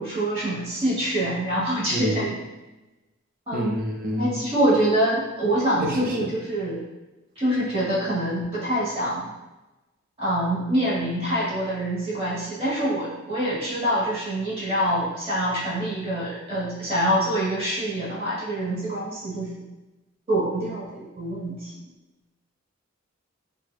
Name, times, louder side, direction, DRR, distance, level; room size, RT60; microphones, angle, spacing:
voice 1, 0.0-2.4 3.5-3.8 4.2-6.8 7.4-9.3 10.2-19.5 20.3-21.7, right 1 dB, 30° right, -8 dB, 1.2 m, -25 dB
voice 2, 1.9-2.2 3.5-4.4 5.8-6.3, equal, 45° right, 0 dB, 0.5 m, -28 dB
4.2 x 2.2 x 2.3 m, 1.0 s
head